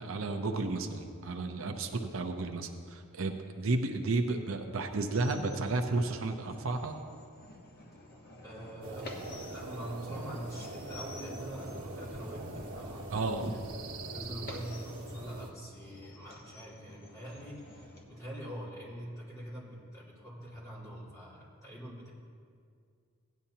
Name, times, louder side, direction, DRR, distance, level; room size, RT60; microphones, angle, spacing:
voice 1, 0.0-7.0 13.1-13.5, right 3 dB, 70° right, 5 dB, 0.7 m, -32 dB
sound 1, 5.1-18.0, left 1 dB, 50° left, 1.3 m, -51 dB
voice 2, 8.4-13.6 14.1-22.1, equal, 15° left, -8 dB, 3.3 m, -44 dB
sound 2, 8.8-15.5, right 2 dB, 85° right, 1.3 m, -43 dB
17.0 x 10.5 x 2.9 m, 2.2 s
head